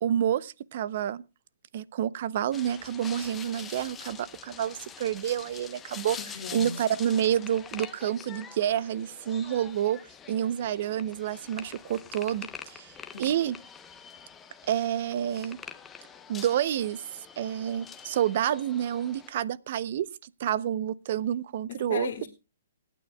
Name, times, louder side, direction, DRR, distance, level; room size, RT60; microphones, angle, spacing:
voice 1, 0.0-1.2 1.7-6.2 6.5-10.0 10.3-13.6 14.7-15.6 16.3-22.3, right 10 dB, 50° right, 0.6 m, -29 dB
sound 1, 2.5-19.3, left 7 dB, 10° left, 0.7 m, -45 dB
voice 2, 6.2-6.8 13.1-13.4 21.7-22.3, left 7 dB, 55° left, 1.7 m, -37 dB
27.0 x 9.2 x 2.2 m
hypercardioid pair, 155°, 0 cm